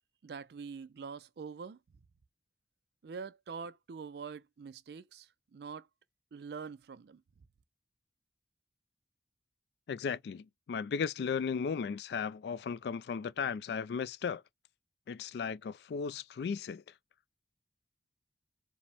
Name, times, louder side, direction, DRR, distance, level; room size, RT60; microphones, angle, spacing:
voice 1, 0.2-1.8 3.0-5.9 6.3-7.2, right 5 dB, 65° right, 0.4 m, -44 dB
voice 2, 9.9-14.4 15.1-16.8, left 6 dB, 65° left, 0.3 m, -35 dB
5.0 x 2.1 x 3.3 m
head